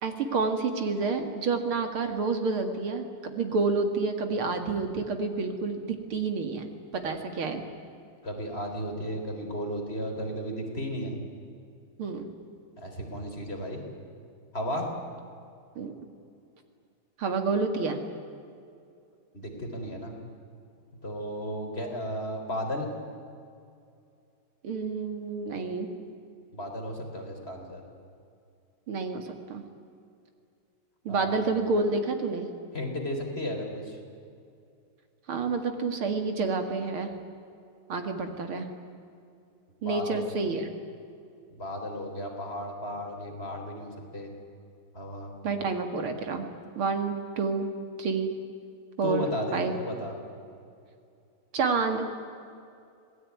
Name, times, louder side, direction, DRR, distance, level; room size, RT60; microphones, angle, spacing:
voice 1, 0.0-6.7 7.0-7.6 12.0-12.3 15.8-15.9 17.2-18.0 24.6-25.9 28.9-29.6 31.0-32.5 35.3-37.1 37.9-38.7 39.8-40.7 45.4-46.5 46.8-47.7 48.0-48.3 49.0-49.3 49.5-49.7 51.5-52.1, right 4 dB, 75° right, 6 dB, 2.9 m, -29 dB
voice 2, 8.2-11.2 12.8-13.8 14.5-14.9 19.3-20.1 21.0-22.9 26.5-27.8 31.1-31.3 32.7-34.0 39.8-40.2 41.6-44.3 44.9-45.3 49.0-50.1, equal, 25° left, 1 dB, 4.1 m, -34 dB
26.5 x 19.0 x 9.5 m, 2.5 s
omnidirectional pair, 2.4 m